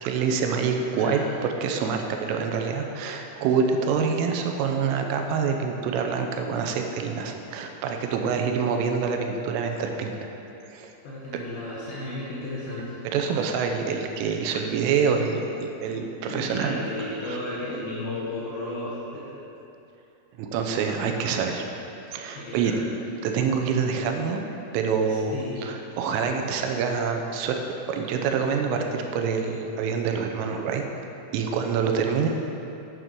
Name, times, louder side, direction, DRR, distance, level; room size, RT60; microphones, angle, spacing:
voice 1, 0.0-10.3 10.7-10.9 13.1-16.8 17.2-17.4 20.4-21.7 22.1-22.7 23.2-24.4 24.7-25.3 25.6-27.6 27.9-30.8 31.3-32.3, right 6 dB, 85° right, 4 dB, 3.3 m, -26 dB
voice 2, 0.9-1.3 8.2-8.4 11.0-13.0 15.9-19.4 21.0-21.3 22.4-22.9 25.1-25.7, left 1 dB, 70° left, -7 dB, 2.3 m, -34 dB
8.8 x 8.2 x 4.6 m, 2.8 s
omnidirectional pair, 5.7 m